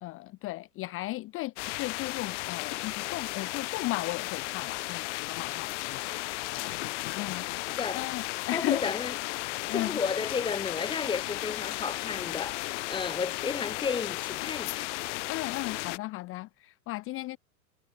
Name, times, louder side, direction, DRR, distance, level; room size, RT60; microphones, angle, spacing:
voice 1, 0.0-6.1 6.5-6.7 7.2-7.6 7.9-8.8 9.7-10.0 15.3-17.4, left 19 dB, 30° left, 0.8 m, -35 dB
sound 1, 1.6-16.0, left 21 dB, 50° left, 1.2 m, -35 dB
voice 2, 7.7-8.1 8.5-9.1 9.7-14.9, left 5 dB, 10° left, 1.4 m, -33 dB
figure-of-eight pair, 100°, 45 cm